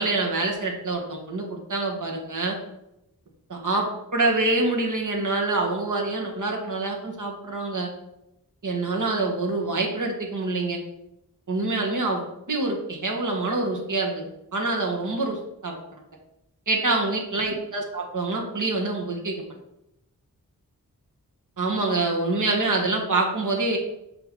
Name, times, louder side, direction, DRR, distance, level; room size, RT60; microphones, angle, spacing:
voice 1, 0.0-2.6 3.5-7.9 8.6-10.8 11.5-12.2 12.5-14.3 14.5-15.7 16.7-19.4 21.6-23.8, right 2 dB, 55° right, 1 dB, 1.5 m, -26 dB
5.8 x 3.8 x 5.3 m, 0.85 s
wide cardioid pair, 65°, 36 cm